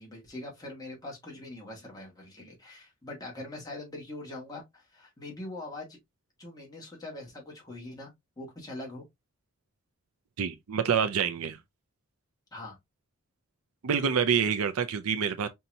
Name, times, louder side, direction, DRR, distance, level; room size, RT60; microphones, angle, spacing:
voice 1, 0.0-6.0 6.4-8.1 8.4-9.0 12.5-12.8, left 2 dB, 15° left, 1.8 m, -42 dB
voice 2, 10.4-11.6 13.8-15.5, right 7 dB, 80° right, 0.5 m, -27 dB
5.5 x 2.8 x 2.7 m
head